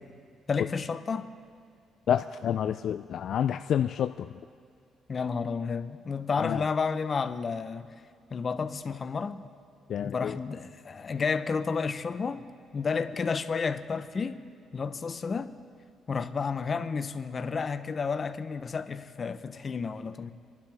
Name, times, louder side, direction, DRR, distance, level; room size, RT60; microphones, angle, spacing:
voice 1, 0.5-1.3 5.1-7.9 8.3-9.4 10.0-12.5 12.7-14.4 14.7-15.5 16.1-20.3, left 5 dB, 40° left, 0.7 m, -31 dB
voice 2, 2.1-4.3 6.4-6.6 9.9-10.4, left 9 dB, 65° left, 0.3 m, -28 dB
28.0 x 11.5 x 3.5 m
cardioid pair, 90°, 0 cm